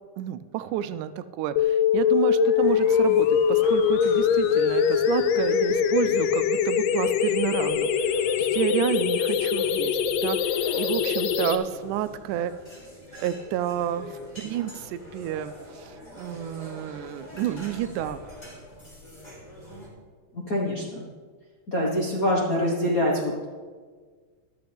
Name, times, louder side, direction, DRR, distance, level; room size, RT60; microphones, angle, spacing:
voice 1, 0.2-12.5 13.2-18.2, right 11 dB, 80° right, 13 dB, 2.0 m, -30 dB
sound 1, 1.6-11.6, left 8 dB, 75° left, 1.7 m, -22 dB
sound 2, 2.6-19.9, equal, 15° left, 2.9 m, -44 dB
voice 2, 20.3-21.0 21.7-23.4, equal, 45° left, -4 dB, 1.1 m, -25 dB
13.5 x 12.0 x 3.5 m, 1.5 s
omnidirectional pair, 3.6 m